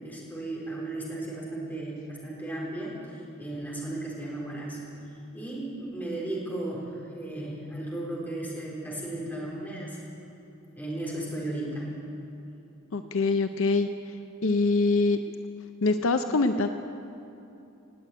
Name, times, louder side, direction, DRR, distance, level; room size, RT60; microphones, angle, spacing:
voice 1, 0.0-4.8 5.3-10.0 10.7-11.9, right 1 dB, 10° left, -5 dB, 4.1 m, -35 dB
voice 2, 12.9-13.9 14.4-15.2 15.8-16.7, left 3 dB, 70° left, 8 dB, 0.6 m, -24 dB
18.5 x 8.4 x 9.1 m, 2.8 s
head